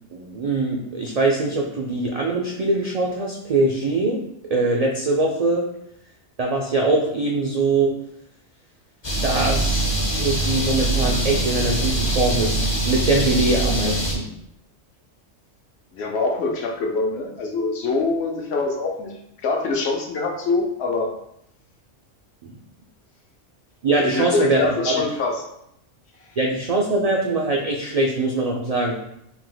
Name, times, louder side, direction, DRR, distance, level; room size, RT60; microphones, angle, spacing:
voice 1, 0.1-5.7 6.4-7.9 9.2-9.8 10.1-14.3 22.4-22.6 23.8-25.0 26.4-28.9, right 2 dB, 65° right, 0 dB, 0.3 m, -22 dB
sound 1, 9.0-14.1, right 1 dB, 30° left, 0.5 m, -23 dB
voice 2, 15.9-19.1 19.4-21.1 24.0-25.4, left 3 dB, 65° left, 1 dB, 0.9 m, -24 dB
3.5 x 2.7 x 3.8 m, 0.76 s
omnidirectional pair, 1.3 m